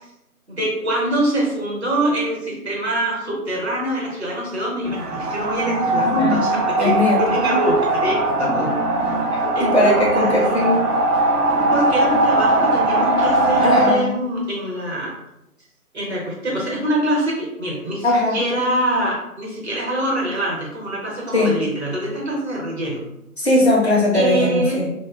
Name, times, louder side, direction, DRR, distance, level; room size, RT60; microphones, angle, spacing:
voice 1, 0.5-8.7 9.5-10.5 11.7-15.1 15.9-23.0 24.1-24.8, right 1 dB, 45° right, -4 dB, 0.9 m, -24 dB
sound 1, 4.9-13.9, right 1 dB, 85° right, 0.5 m, -20 dB
voice 2, 5.9-6.5 6.8-7.2 7.5-7.6 9.6-10.9 13.6-14.1 18.0-18.4 21.3-21.6 23.4-24.9, left 1 dB, 45° left, -4 dB, 0.6 m, -19 dB
2.5 x 2.1 x 2.3 m, 0.85 s
figure-of-eight pair, 155°, 46 cm